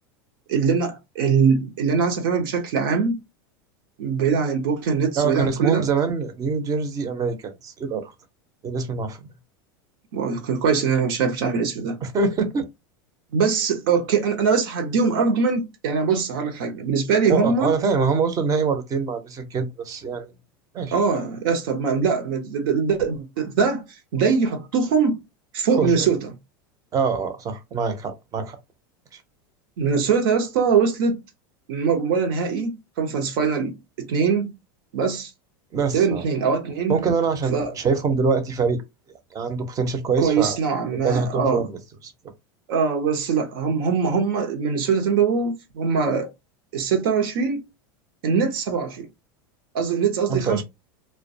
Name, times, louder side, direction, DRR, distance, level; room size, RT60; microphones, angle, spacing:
voice 1, 0.5-3.2 4.0-5.8 10.1-12.0 13.3-17.7 20.9-23.8 24.1-25.2 25.5-26.3 29.8-31.2 31.7-34.5 34.9-35.3 35.9-37.0 37.5-37.7 40.2-41.6 42.7-46.3 46.7-47.6 48.2-49.1 49.7-50.6, right 5 dB, 70° right, 0.7 m, -22 dB
voice 2, 5.2-8.1 8.6-9.2 12.0-12.7 17.3-20.3 20.7-20.9 25.8-26.1 26.9-28.6 29.1-29.2 35.7-36.2 36.9-38.8 39.3-40.6 41.0-42.1 50.3-50.6, right 5 dB, 30° right, 0.6 m, -24 dB
2.2 x 2.2 x 2.6 m
supercardioid pair, 120°, 12 cm